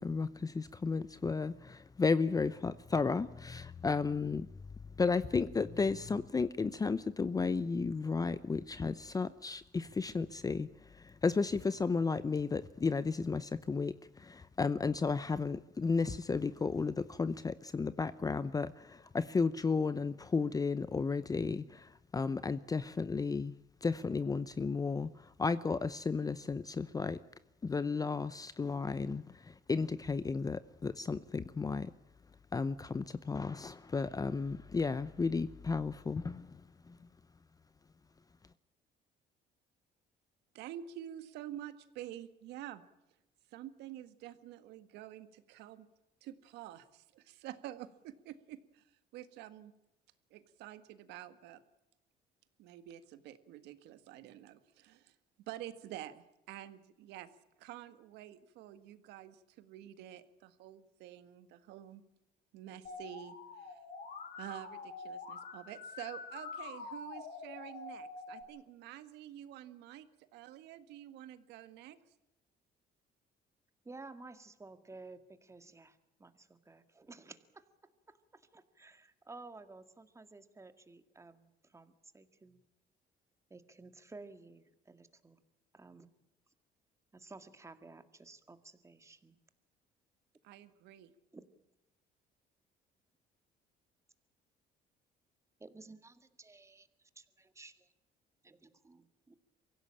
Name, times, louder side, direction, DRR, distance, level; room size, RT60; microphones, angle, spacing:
voice 1, 0.0-4.5 5.0-23.5 23.8-27.2 27.6-31.9 32.5-36.6 36.9-37.0, left 4 dB, 20° left, 15 dB, 0.7 m, -33 dB
voice 2, 40.5-42.8 43.5-45.9 46.2-48.8 49.1-49.7 50.3-51.6 52.6-55.2 55.5-57.3 57.6-62.0 62.5-63.7 64.4-72.0 90.4-91.1, right 12 dB, 90° right, 12 dB, 1.7 m, -48 dB
Musical instrument, 62.8-68.4, left 4 dB, 50° left, 5.6 m, -46 dB
voice 3, 73.8-77.7 78.1-82.6 83.5-85.4 85.7-86.1 87.1-89.4 91.3-91.4 95.6-97.9 98.4-99.3, right 3 dB, 15° right, 10 dB, 2.0 m, -54 dB
24.0 x 16.5 x 8.8 m, 0.93 s
cardioid pair, 110°, 17 cm